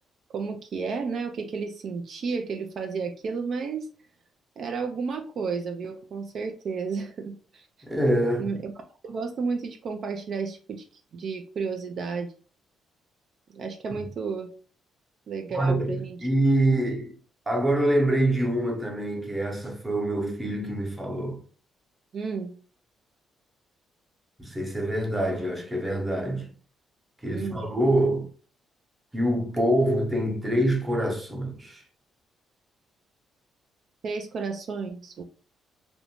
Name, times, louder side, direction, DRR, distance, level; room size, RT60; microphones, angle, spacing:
voice 1, 0.3-3.9 4.6-7.7 8.4-8.7 9.0-10.8 11.1-12.3 13.5-14.5 15.3-16.2 22.1-22.5 27.3-27.7 34.0-35.2, right 5 dB, 60° right, 0.3 m, -32 dB
voice 2, 7.8-8.5 15.5-17.1 17.5-21.4 24.4-26.5 27.2-28.3 29.1-31.8, right 1 dB, 10° right, 0.8 m, -25 dB
2.5 x 2.1 x 2.9 m
cardioid pair, 90°, 0 cm